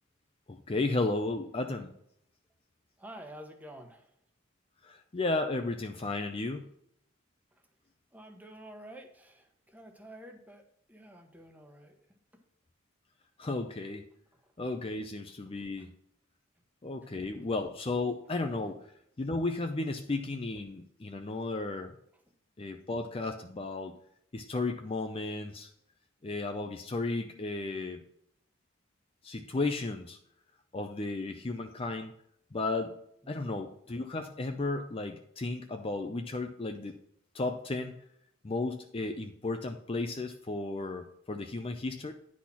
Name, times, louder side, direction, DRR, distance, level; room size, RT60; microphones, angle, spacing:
voice 1, 0.5-1.9 4.8-6.7 13.4-14.0 14.6-15.9 16.8-18.9 19.2-21.9 22.6-23.9 24.3-25.7 26.2-28.0 29.2-30.2 30.7-32.1 32.5-33.0 33.3-37.0 37.3-38.0 38.4-42.1, left 2 dB, 25° left, 6 dB, 0.5 m, -34 dB
voice 2, 3.0-4.1 8.1-12.0 14.3-14.5 15.5-15.9 17.2-17.3 33.2-33.5, right 1 dB, 10° right, 4 dB, 1.0 m, -50 dB
10.0 x 4.2 x 5.7 m, 0.72 s
head